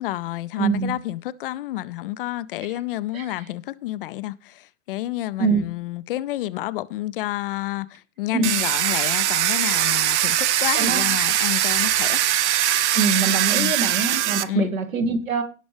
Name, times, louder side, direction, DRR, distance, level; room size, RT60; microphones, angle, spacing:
voice 1, 0.0-12.2 13.5-13.7 14.5-14.7, left 16 dB, 45° left, 0.4 m, -30 dB
voice 2, 0.6-1.0 3.1-3.3 5.4-5.6 8.3-8.5 10.7-11.1 12.9-15.4, right 4 dB, 75° right, 1.9 m, -24 dB
Domestic sounds home sounds, 8.4-14.4, right 12 dB, 55° right, 0.7 m, -21 dB
17.5 x 6.0 x 3.3 m
figure-of-eight pair, 90°, 40 cm